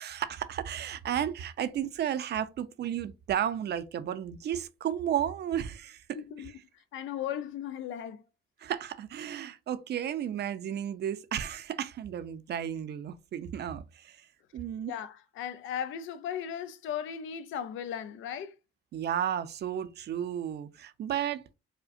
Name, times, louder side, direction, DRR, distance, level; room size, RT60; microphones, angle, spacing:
voice 1, 0.0-6.5 8.6-14.3 14.5-14.9 18.9-21.4, right 10 dB, 55° right, 0.5 m, -33 dB
voice 2, 6.1-6.5 6.9-8.2 14.9-18.5, left 9 dB, 80° left, 0.5 m, -36 dB
4.9 x 2.1 x 2.5 m
cardioid pair, 90°, 20 cm